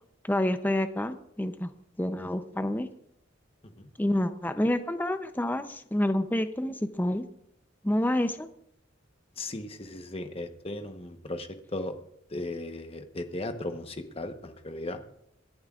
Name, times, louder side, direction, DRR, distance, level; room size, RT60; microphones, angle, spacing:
voice 1, 0.2-1.7 2.0-2.9 4.0-7.3 7.8-8.5, left 1 dB, 10° left, 9 dB, 0.5 m, -28 dB
voice 2, 9.4-11.9 12.3-15.0, left 2 dB, 30° left, 7 dB, 1.0 m, -36 dB
26.5 x 11.0 x 2.4 m, 0.73 s
head